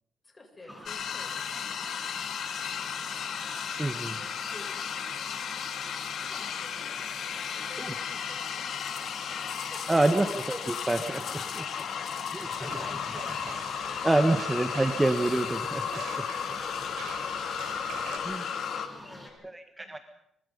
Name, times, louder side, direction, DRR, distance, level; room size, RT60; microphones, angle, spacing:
voice 1, 0.2-2.0 2.9-3.5 4.0-5.4 6.2-10.4 11.4-14.6 15.9-17.4 18.1-18.6 18.9-20.0, left 2 dB, 25° left, 3 dB, 7.5 m, -51 dB
sound 1, 0.7-19.3, left 1 dB, 5° left, 6.5 m, -48 dB
sound 2, 0.9-18.9, left 8 dB, 65° left, 2.5 m, -34 dB
voice 2, 3.8-4.2 7.8-7.9 9.9-11.4 12.3-12.5 14.0-16.0 18.2-18.4 19.4-20.0, right 2 dB, 15° right, 7 dB, 1.6 m, -27 dB
sound 3, 12.5-18.2, right 7 dB, 85° right, 4.2 m, -44 dB
24.5 x 23.5 x 5.5 m, 0.78 s
cardioid pair, 90°, 0 cm